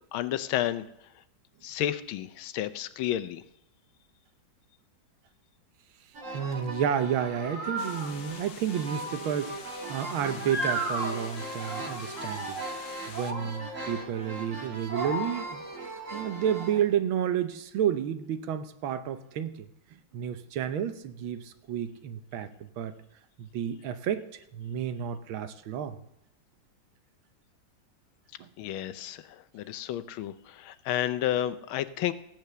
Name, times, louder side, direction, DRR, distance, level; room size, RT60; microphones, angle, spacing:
voice 1, 0.1-0.8 1.6-3.4 28.6-32.1, left 12 dB, 85° left, 13 dB, 1.5 m, -31 dB
sound 1, 6.2-16.8, right 2 dB, 40° right, 2.2 m, -36 dB
voice 2, 6.3-12.6 13.1-15.6 16.1-22.9 23.4-24.2 24.5-26.0 28.4-28.5, right 9 dB, 90° right, 11 dB, 1.7 m, -31 dB
sound 2, 7.8-13.3, left 8 dB, 70° left, 1.6 m, -47 dB
15.0 x 9.1 x 6.8 m, 0.81 s
omnidirectional pair, 2.2 m